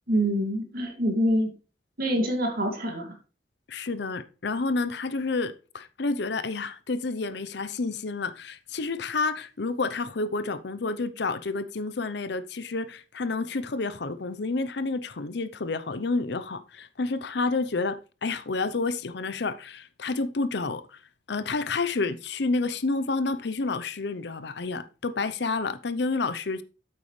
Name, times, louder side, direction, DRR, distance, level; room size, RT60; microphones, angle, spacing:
voice 1, 0.1-1.5 2.0-3.2, equal, 55° right, 2.4 m, -25 dB
voice 2, 3.7-21.0 21.3-26.6, left 3 dB, 65° left, 0.7 m, -29 dB
8.6 x 8.3 x 3.2 m
head